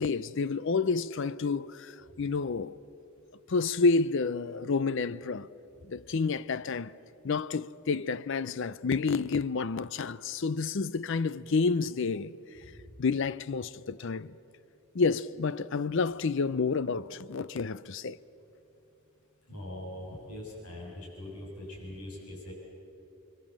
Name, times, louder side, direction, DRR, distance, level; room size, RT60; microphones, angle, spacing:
voice 1, 0.0-2.8 3.5-5.5 5.8-6.9 7.2-12.3 13.0-14.3 14.9-18.2, left 4 dB, 55° left, 0.5 m, -29 dB
voice 2, 19.5-22.5, left 1 dB, 90° left, 7.1 m, -42 dB
29.5 x 23.5 x 7.5 m
head